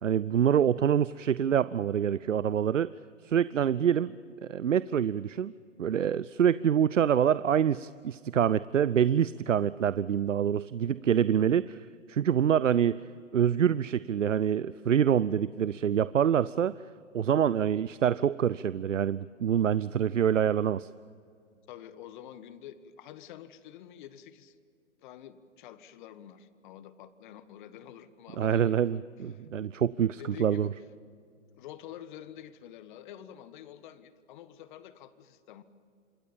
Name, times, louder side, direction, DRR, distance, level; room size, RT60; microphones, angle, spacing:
voice 1, 0.0-2.9 3.2-4.1 4.4-5.5 5.8-13.0 13.3-16.7 17.1-20.9 28.4-30.7, right 9 dB, 90° right, 18 dB, 0.6 m, -26 dB
voice 2, 21.7-24.6 25.0-29.0 29.3-29.5 30.1-30.7 31.5-35.6, left 11 dB, 40° left, 13 dB, 1.5 m, -48 dB
27.0 x 21.0 x 7.2 m, 2.4 s
hypercardioid pair, 130°, 36 cm